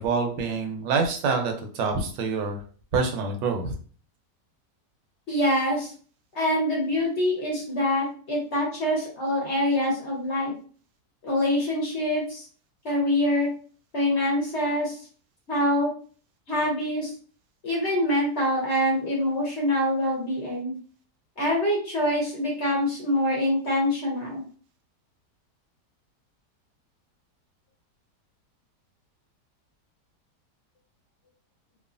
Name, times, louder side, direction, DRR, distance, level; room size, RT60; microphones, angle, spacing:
voice 1, 0.0-2.6 2.9-3.7, right 4 dB, 80° right, 4 dB, 1.2 m, -26 dB
voice 2, 5.3-5.9 6.3-10.5 11.2-12.4 12.8-13.5 13.9-15.0 15.5-15.9 16.5-17.1 17.6-20.7 21.4-24.4, left 1 dB, 55° left, -3 dB, 0.8 m, -25 dB
3.0 x 2.2 x 2.4 m, 0.42 s
omnidirectional pair, 1.9 m